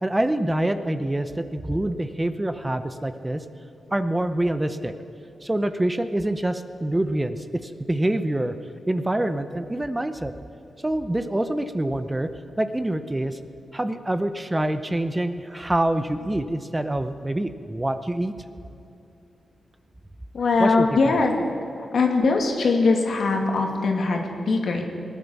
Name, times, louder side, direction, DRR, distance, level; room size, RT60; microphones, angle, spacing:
voice 1, 0.0-3.4 3.9-4.9 5.4-8.5 8.9-10.3 10.8-12.3 12.6-13.4 13.7-18.3 20.6-20.9 21.2-21.3, right 1 dB, 15° right, 10 dB, 0.7 m, -26 dB
voice 2, 20.3-24.8, left 3 dB, 75° left, 2 dB, 2.3 m, -22 dB
19.5 x 9.9 x 7.2 m, 2.7 s
wide cardioid pair, 95°, 0 cm